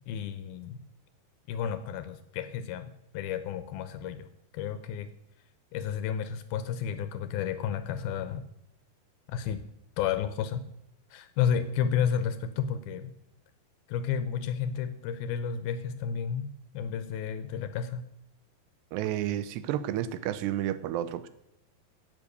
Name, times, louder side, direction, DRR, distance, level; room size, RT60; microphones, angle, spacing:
voice 1, 0.1-0.8 1.5-4.3 4.5-5.1 5.7-8.5 9.3-9.6 10.0-10.7 11.1-13.1 13.9-18.1, left 8 dB, 80° left, 12 dB, 2.4 m, -32 dB
voice 2, 18.9-21.3, right 12 dB, 85° right, 14 dB, 3.0 m, -31 dB
16.0 x 8.1 x 6.7 m, 0.81 s
omnidirectional pair, 4.8 m